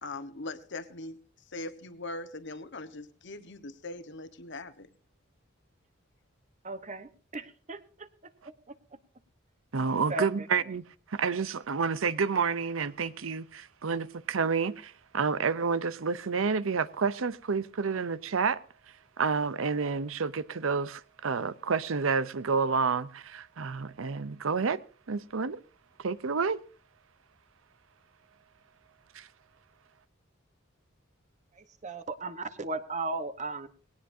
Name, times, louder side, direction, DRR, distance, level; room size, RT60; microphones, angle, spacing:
voice 1, 0.0-1.2 1.5-4.9, left 2 dB, 60° left, 1.3 m, -40 dB
voice 2, 6.6-8.1 8.7-8.8 10.1-10.5 31.5-33.7, right 3 dB, 35° right, 1.1 m, -36 dB
voice 3, 9.7-18.6 19.2-24.8 25.1-25.6 26.0-26.6 29.1-29.3, right 5 dB, 85° right, 0.7 m, -29 dB
19.0 x 18.0 x 2.7 m
head